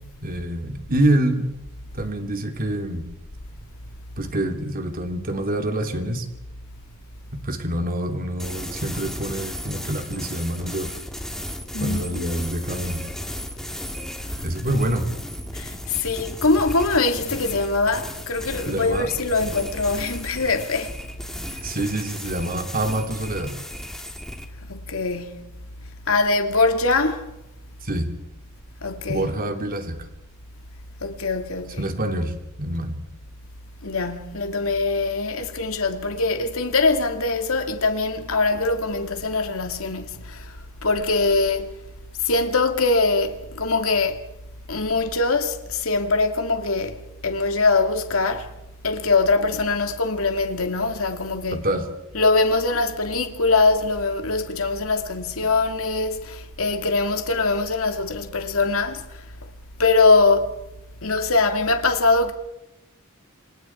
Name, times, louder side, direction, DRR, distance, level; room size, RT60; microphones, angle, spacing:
voice 1, 0.2-1.5 1.9-3.0 4.2-6.2 7.3-11.0 11.8-13.0 14.4-15.1 18.7-19.1 21.6-23.6 27.8-28.1 29.1-30.0 31.8-33.0 51.5-51.9, right 1 dB, 40° right, 3.1 m, -26 dB
sound 1, 8.4-24.5, equal, ahead, 2.3 m, -35 dB
voice 2, 11.7-12.0 15.5-20.9 24.7-25.5 26.1-27.3 28.8-29.3 31.0-31.8 33.8-40.6 40.8-41.7 42.2-44.2 44.7-48.5 48.8-51.7 52.1-59.0 59.8-60.6 61.0-62.3, left 3 dB, 70° left, 2.6 m, -22 dB
29.0 x 26.0 x 4.6 m
head